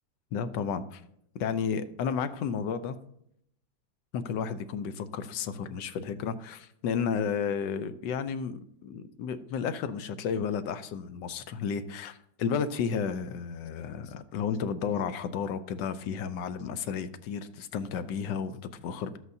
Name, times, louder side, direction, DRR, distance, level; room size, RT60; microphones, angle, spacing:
voice 1, 0.3-1.0 1.3-3.0 4.1-19.2, left 6 dB, 70° left, 11 dB, 1.2 m, -32 dB
13.0 x 7.9 x 2.7 m, 0.72 s
omnidirectional pair, 2.1 m